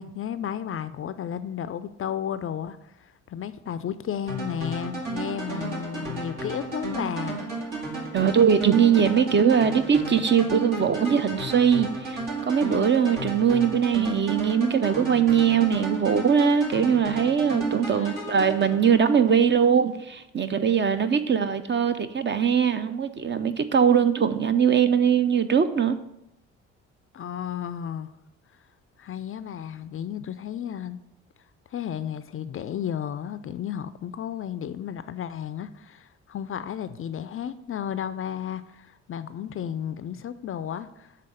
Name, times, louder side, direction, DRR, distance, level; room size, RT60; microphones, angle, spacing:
voice 1, 0.0-7.5 17.9-18.1 27.1-28.1 29.0-31.0 31.7-41.2, left 9 dB, 35° left, 13 dB, 0.4 m, -33 dB
sound 1, 4.3-19.3, right 2 dB, 65° right, 2.3 m, -33 dB
voice 2, 8.1-12.2 12.5-26.0, right 7 dB, 30° right, 10 dB, 0.6 m, -21 dB
7.5 x 3.6 x 6.4 m, 0.85 s
hypercardioid pair, 50°, 36 cm